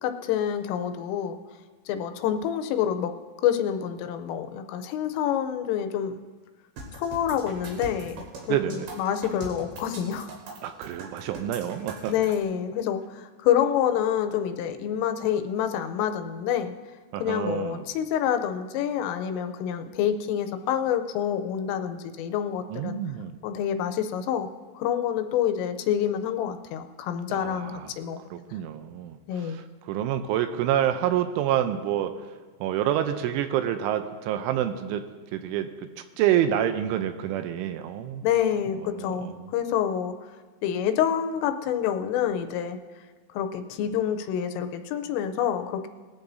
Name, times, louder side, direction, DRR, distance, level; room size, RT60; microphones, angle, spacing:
voice 1, 0.0-1.4 1.9-3.1 3.4-6.2 6.9-10.3 12.1-16.7 17.2-23.0 23.4-24.5 24.7-28.4 29.3-29.6 38.2-40.2 40.6-42.8 43.3-45.9, left 9 dB, 85° left, 7 dB, 3.3 m, -27 dB
sound 1, 6.8-12.4, right 2 dB, 60° right, 4.2 m, -41 dB
voice 2, 8.5-8.9 10.6-12.1 17.1-17.8 22.7-23.4 27.3-27.9 28.3-32.1 32.6-35.0 35.3-35.7 36.2-38.2 38.9-39.5, right 11 dB, 80° right, 8 dB, 3.0 m, -27 dB
20.5 x 14.0 x 2.7 m, 1.4 s
omnidirectional pair, 5.7 m